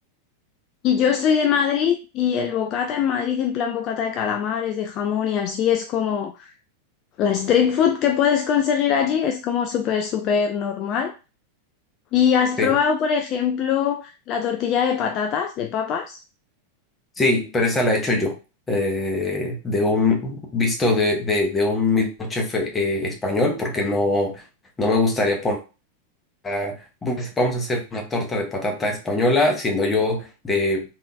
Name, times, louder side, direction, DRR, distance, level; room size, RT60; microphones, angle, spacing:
voice 1, 0.8-6.5 7.2-11.1 12.1-16.2, left 8 dB, 35° left, 0.3 m, -22 dB
voice 2, 17.2-18.3 18.7-24.4 24.8-25.6 26.4-26.8 27.0-30.8, left 2 dB, 15° left, 0.9 m, -22 dB
3.5 x 2.6 x 2.5 m
figure-of-eight pair, 90°, 0 cm